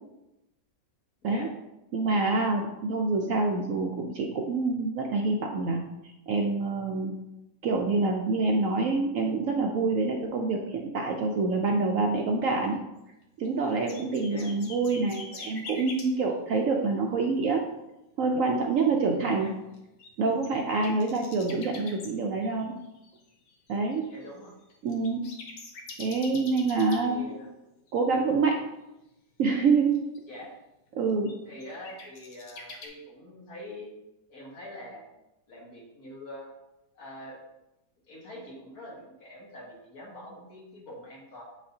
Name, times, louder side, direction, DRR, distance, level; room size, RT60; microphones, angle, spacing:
voice 1, 1.9-5.8 6.3-7.1 7.6-12.8 13.4-17.6 18.2-19.5 20.2-22.7 23.7-24.0 24.8-25.2 26.0-27.2 27.9-28.6 29.4-30.0 30.9-31.3, right 3 dB, 65° right, 2 dB, 0.8 m, -26 dB
sound 1, 13.2-16.1 19.7-22.1 22.4-27.0 27.9-28.0 29.7-30.2 31.3-32.9, left 3 dB, 85° left, 1.6 m, -44 dB
voice 2, 24.1-24.5 27.0-27.5 30.3-30.5 31.5-33.9 34.3-35.1 35.5-36.5 36.9-37.4 38.1-41.4, left 1 dB, 60° left, -3 dB, 2.1 m, -44 dB
7.7 x 5.1 x 2.8 m, 0.93 s
omnidirectional pair, 1.8 m